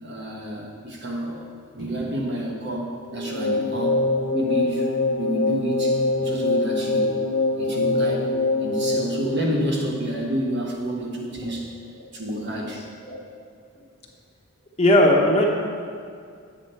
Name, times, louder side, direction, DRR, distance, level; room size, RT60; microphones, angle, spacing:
voice 1, 0.0-1.4 1.7-7.2 7.6-8.3 8.6-11.7 12.1-12.8, right 1 dB, 50° right, -1 dB, 1.4 m, -29 dB
sound 1, 3.1-10.3, left 2 dB, 75° left, 0.9 m, -24 dB
voice 2, 14.8-15.5, left 1 dB, 30° left, -1 dB, 1.0 m, -18 dB
9.3 x 7.6 x 4.4 m, 2.3 s
head